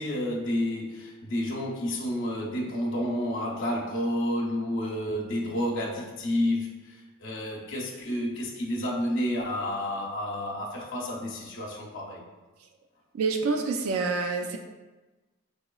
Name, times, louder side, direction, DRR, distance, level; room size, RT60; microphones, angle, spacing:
voice 1, 0.0-12.2, left 1 dB, 55° left, -4 dB, 0.7 m, -30 dB
voice 2, 13.1-14.6, right 4 dB, 75° right, 3 dB, 0.3 m, -27 dB
3.9 x 3.0 x 2.2 m, 1.2 s
head